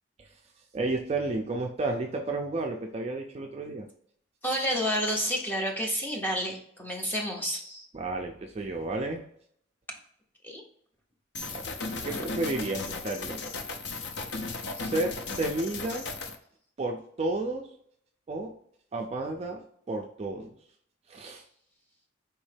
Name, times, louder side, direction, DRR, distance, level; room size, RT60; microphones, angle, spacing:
voice 1, 0.7-3.9 7.9-9.2 11.5-11.7 12.0-13.5 14.7-16.1 16.8-17.6 18.3-18.5 18.9-20.5 21.1-21.4, right 2 dB, 30° right, 2 dB, 0.3 m, -32 dB
voice 2, 4.4-7.9 10.4-10.6 12.0-12.2, equal, 10° left, 0 dB, 0.7 m, -30 dB
sound 1, 11.3-16.4, left 3 dB, 55° left, 0.5 m, -36 dB
4.6 x 3.1 x 3.3 m, 0.67 s
head